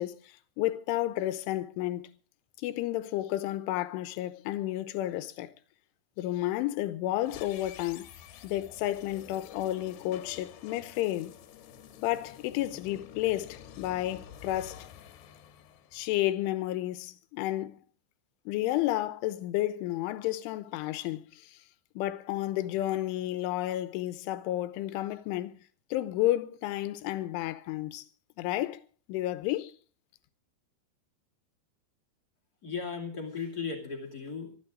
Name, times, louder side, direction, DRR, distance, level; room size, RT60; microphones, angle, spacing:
voice 1, 0.0-2.1 2.6-5.5 6.2-8.1 8.4-11.3 12.0-14.9 15.9-17.8 18.5-21.6 22.0-25.6 25.9-28.1 28.4-28.8 29.1-29.7, left 15 dB, 90° left, 3.4 m, -31 dB
sound 1, 7.2-16.4, left 9 dB, 70° left, 3.1 m, -49 dB
voice 2, 32.6-34.6, left 5 dB, 25° left, 2.3 m, -36 dB
25.0 x 12.0 x 3.8 m
omnidirectional pair, 5.4 m